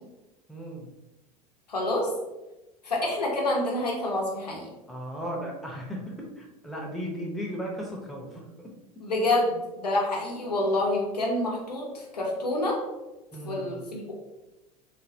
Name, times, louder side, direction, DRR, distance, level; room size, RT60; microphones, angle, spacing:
voice 1, 0.5-0.9 4.9-8.7 13.3-13.8, equal, ahead, -2 dB, 0.6 m, -36 dB
voice 2, 1.7-2.1 2.8-4.7 9.0-12.8 13.4-14.1, left 1 dB, 85° left, -2 dB, 0.7 m, -27 dB
3.2 x 2.0 x 2.7 m, 1.0 s
figure-of-eight pair, 80°, 20 cm